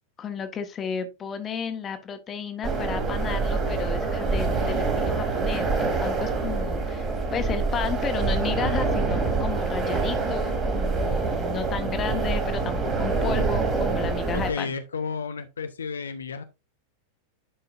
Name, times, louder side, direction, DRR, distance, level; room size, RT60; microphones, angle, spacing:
voice 1, 0.2-14.7, left 7 dB, 25° left, 1.5 m, -33 dB
sound 1, 2.6-14.5, right 3 dB, 20° right, 3.3 m, -26 dB
voice 2, 14.3-16.4, left 5 dB, 70° left, 0.8 m, -32 dB
11.0 x 5.5 x 2.6 m
figure-of-eight pair, 90°, 0 cm